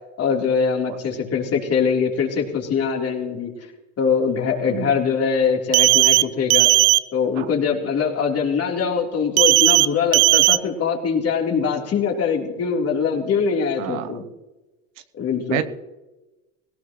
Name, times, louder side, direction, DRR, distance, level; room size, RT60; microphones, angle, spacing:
voice 1, 0.2-3.5 4.0-6.7 7.1-14.2 15.2-15.6, left 6 dB, 40° left, 0 dB, 3.5 m, -22 dB
voice 2, 0.9-1.2 4.7-5.0 7.4-7.5 11.6-11.7 13.8-14.1 15.5-15.6, right 13 dB, 80° right, 12 dB, 0.9 m, -29 dB
sound 1, 5.7-6.2 6.5-7.0 9.4-9.9 10.1-10.6, right 20 dB, 60° right, 0.6 m, -15 dB
18.0 x 17.5 x 3.1 m, 1.1 s
supercardioid pair, 95°, 38 cm